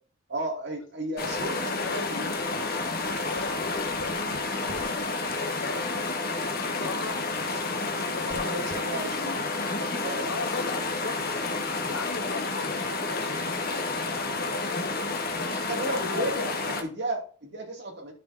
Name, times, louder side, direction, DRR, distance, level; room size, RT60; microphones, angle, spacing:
voice 1, 0.3-2.3 3.1-3.3 8.2-9.5 10.0-10.3 11.9-12.0 15.5-18.1, right 1 dB, 60° right, 1 dB, 2.2 m, -34 dB
sound 1, 1.2-16.8, left 3 dB, 50° left, 1.0 m, -30 dB
sound 2, 2.8-12.1, left 3 dB, 20° left, 1.7 m, -52 dB
voice 2, 3.3-4.1 4.4-4.8 5.3-5.9 6.6-7.2 7.8-9.0 10.2-11.2 11.9-13.5 13.9-16.5, left 4 dB, 85° left, 9 dB, 0.9 m, -38 dB
13.0 x 4.3 x 2.5 m, 0.41 s
head